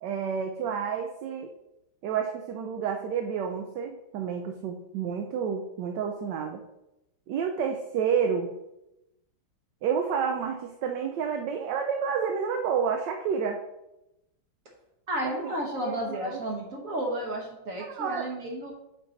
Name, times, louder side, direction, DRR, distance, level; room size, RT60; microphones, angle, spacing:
voice 1, 0.0-1.5 2.0-6.6 7.3-8.5 9.8-13.6 15.2-16.4 17.8-18.3, right 7 dB, 70° right, 4 dB, 1.1 m, -30 dB
voice 2, 15.1-18.7, right 1 dB, 50° right, 0 dB, 1.2 m, -32 dB
7.9 x 4.0 x 4.0 m, 0.90 s
omnidirectional pair, 2.2 m